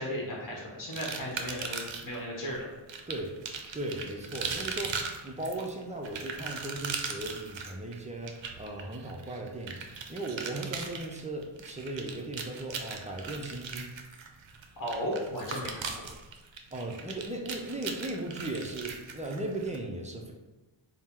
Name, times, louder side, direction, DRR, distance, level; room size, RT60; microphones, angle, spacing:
voice 1, 0.0-2.7 14.8-15.9, equal, 40° left, -3 dB, 1.1 m, -35 dB
sound 1, 0.9-2.2 2.9-19.8, right 5 dB, 65° right, 0.6 m, -39 dB
voice 2, 3.1-3.4 3.7-9.8 10.1-13.9 16.7-20.3, right 2 dB, 15° right, 0 dB, 0.4 m, -37 dB
4.3 x 2.1 x 3.6 m, 1.2 s
wide cardioid pair, 100°, 49 cm